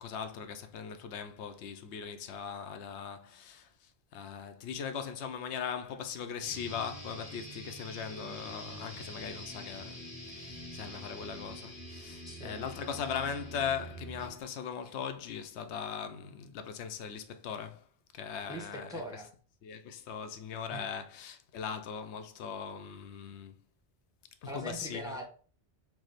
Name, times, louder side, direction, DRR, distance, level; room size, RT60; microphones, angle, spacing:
voice 1, 0.0-17.8 18.1-19.0 19.6-23.6 24.4-25.2, left 7 dB, 85° left, 0.9 m, -39 dB
sound 1, 6.4-14.4, equal, 40° left, 1.9 m, -45 dB
voice 2, 12.3-12.7 18.5-19.3 20.7-20.8 24.4-25.3, right 1 dB, 5° right, 0.8 m, -42 dB
4.7 x 2.1 x 4.0 m
omnidirectional pair, 1.1 m